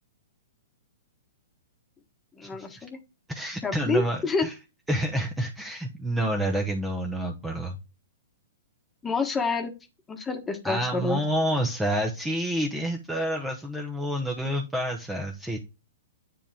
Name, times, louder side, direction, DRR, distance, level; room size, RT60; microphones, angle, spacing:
voice 1, 2.3-3.0 3.6-4.5 9.0-9.7 10.1-11.2, left 4 dB, 15° left, 5 dB, 1.3 m, -28 dB
voice 2, 3.3-4.5 4.9-7.8 10.6-15.6, right 1 dB, 5° right, 2 dB, 0.9 m, -28 dB
9.9 x 3.6 x 3.6 m, 0.28 s
hypercardioid pair, 140°, 0 cm